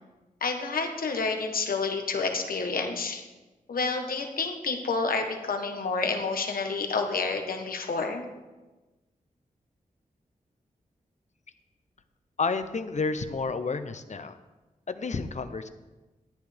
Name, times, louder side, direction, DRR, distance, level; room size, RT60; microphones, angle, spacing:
voice 1, 0.4-3.2 3.7-8.2, left 4 dB, 85° left, 4 dB, 1.2 m, -29 dB
voice 2, 12.4-14.4 14.9-15.7, left 4 dB, 55° left, 10 dB, 0.8 m, -30 dB
13.0 x 9.6 x 3.5 m, 1.2 s
cardioid pair, 55°, 15 cm